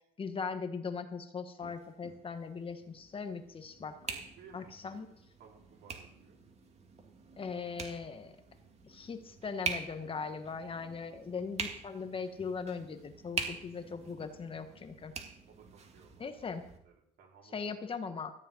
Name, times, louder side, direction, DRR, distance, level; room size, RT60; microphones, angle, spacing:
voice 1, 0.2-3.9 4.5-5.1 7.4-8.4 8.8-15.1 16.2-16.7 17.5-18.3, left 5 dB, 30° left, 7 dB, 1.5 m, -39 dB
sound 1, 1.6-16.8, right 5 dB, 40° right, 2.3 m, -45 dB
voice 2, 4.1-6.4 11.1-11.5 15.5-16.5 16.8-17.7, right 6 dB, 70° right, -1 dB, 4.6 m, -59 dB
14.5 x 5.5 x 9.3 m, 0.72 s
cardioid pair, 110°, 17 cm